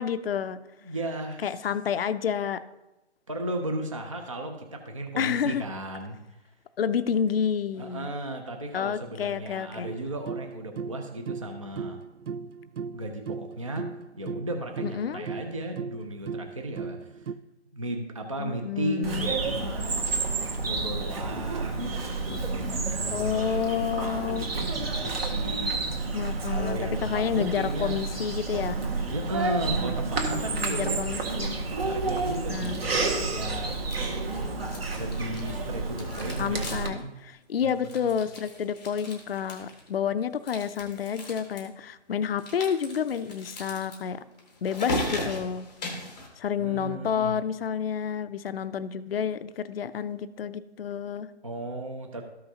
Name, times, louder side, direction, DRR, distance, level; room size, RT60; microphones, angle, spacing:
voice 1, 0.0-0.6 1.4-2.6 5.2-5.6 6.8-8.1 8.7-9.9 14.8-15.3 18.4-19.3 23.1-24.5 26.1-28.8 30.5-31.6 32.5-32.9 36.4-44.2 44.6-45.7 46.4-51.3, left 8 dB, 55° left, 11 dB, 0.5 m, -29 dB
voice 2, 0.8-1.6 3.3-6.2 7.7-12.0 12.9-13.9 14.2-17.3 17.7-19.9 20.6-23.6 24.2-25.8 26.5-28.0 29.1-31.0 31.8-33.0 33.3-33.8 35.0-37.2 37.6-37.7 38.0-38.2 46.6-47.4 51.4-52.2, right 1 dB, 30° right, 4 dB, 0.4 m, -35 dB
sound 1, 9.8-17.3, right 6 dB, 85° right, 0.5 m, -37 dB
Bird vocalization bird call bird song, 19.0-36.9, right 3 dB, 55° right, 1.7 m, -30 dB
sound 2, 33.7-34.3 34.6-35.6 35.9-37.0 37.3-37.4 37.7-39.9 40.4-41.6 42.4-46.3, left 1 dB, 5° left, 0.7 m, -37 dB
13.5 x 5.7 x 2.8 m, 0.97 s
hypercardioid pair, 170°, 36 cm